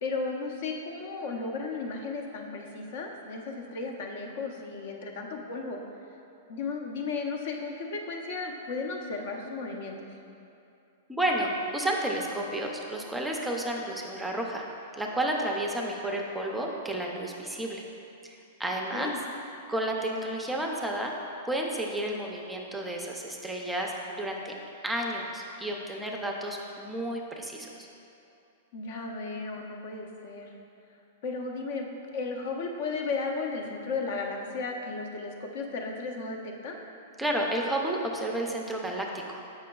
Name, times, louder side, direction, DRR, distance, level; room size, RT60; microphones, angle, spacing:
voice 1, 0.0-5.8 6.5-10.1 18.9-19.2 28.7-30.5 31.2-31.9 32.1-36.8, left 4 dB, 60° left, 2 dB, 0.7 m, -34 dB
voice 2, 11.1-14.6 14.9-17.8 18.2-19.1 19.7-21.1 21.5-24.5 24.8-27.9 37.2-39.1 39.3-39.4, right 1 dB, 5° right, -1 dB, 0.5 m, -31 dB
7.4 x 5.6 x 2.3 m, 2.7 s
hypercardioid pair, 150°, 0 cm